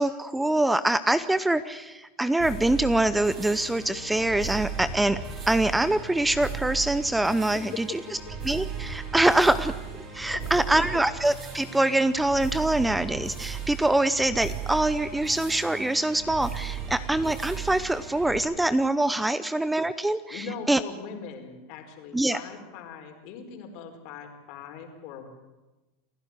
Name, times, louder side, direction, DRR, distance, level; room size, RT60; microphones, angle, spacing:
voice 1, 0.0-5.2 5.5-8.0 8.4-9.7 10.1-20.8 22.1-22.4, right 1 dB, 5° right, 14 dB, 0.8 m, -24 dB
sound 1, 2.4-18.4, right 7 dB, 35° right, 7.9 m, -36 dB
voice 2, 20.3-25.3, left 5 dB, 55° left, 5 dB, 4.8 m, -41 dB
29.0 x 11.5 x 10.0 m, 1.1 s
supercardioid pair, 125°, 0 cm